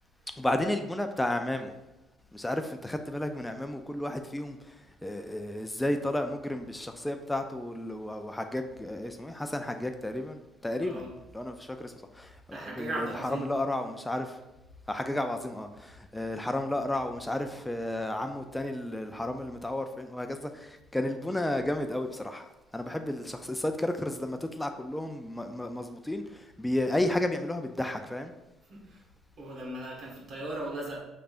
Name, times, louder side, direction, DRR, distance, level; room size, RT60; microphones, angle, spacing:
voice 1, 0.4-1.7 2.3-11.1 11.3-14.4 14.9-28.3, left 1 dB, 10° left, 6 dB, 0.3 m, -32 dB
voice 2, 10.8-11.2 12.5-13.6 28.7-29.0 29.4-31.0, right 1 dB, 55° right, -2 dB, 1.4 m, -37 dB
4.9 x 3.3 x 2.4 m, 1.0 s
hypercardioid pair, 60°, 0 cm